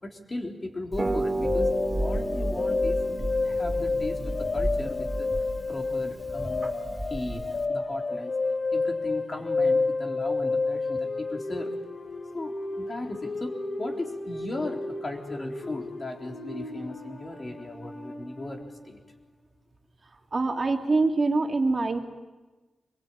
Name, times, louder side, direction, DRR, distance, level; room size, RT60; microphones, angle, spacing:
voice 1, 0.0-1.7 2.0-5.3 5.7-6.7 7.0-8.3 8.7-11.7 12.3-19.0, left 2 dB, 35° left, 2 dB, 3.8 m, -37 dB
Harp, 0.9-7.7, right 1 dB, 20° right, 2.5 m, -32 dB
sound 1, 1.4-18.8, left 3 dB, 60° left, 3.4 m, -30 dB
voice 2, 20.3-22.0, right 3 dB, 40° right, 3 dB, 2.5 m, -24 dB
25.0 x 22.5 x 8.9 m, 1.2 s
wide cardioid pair, 105°, 0 cm